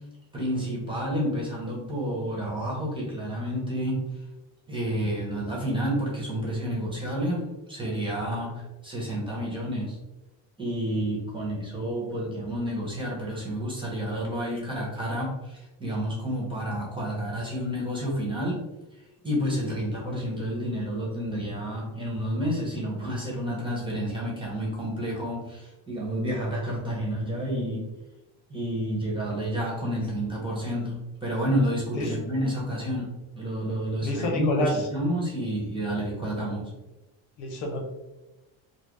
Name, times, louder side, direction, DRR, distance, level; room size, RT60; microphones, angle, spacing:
voice 1, 0.3-4.1 4.7-10.0 10.6-18.6 18.9-27.8 28.5-33.1 33.3-36.7, equal, 10° right, -4 dB, 1.2 m, -30 dB
voice 2, 34.0-34.8 37.4-37.8, left 1 dB, 70° left, 2 dB, 1.0 m, -28 dB
3.9 x 2.2 x 3.2 m, 1.0 s
cardioid pair, 130°, 47 cm